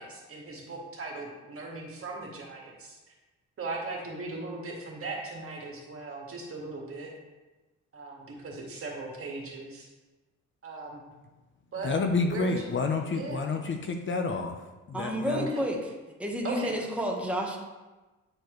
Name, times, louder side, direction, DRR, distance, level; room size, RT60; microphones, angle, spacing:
voice 1, 0.0-3.0 3.6-7.1 7.9-9.9 10.6-11.0 11.7-11.9 12.3-12.5 13.1-13.5 15.3-15.6 16.4-16.8, right 3 dB, 45° right, -1 dB, 1.8 m, -38 dB
voice 2, 11.7-15.5, left 4 dB, 40° left, 4 dB, 0.7 m, -30 dB
voice 3, 14.9-15.8 16.2-17.6, equal, 5° right, -1 dB, 1.2 m, -30 dB
8.6 x 4.5 x 3.1 m, 1.2 s
cardioid pair, 90°, 30 cm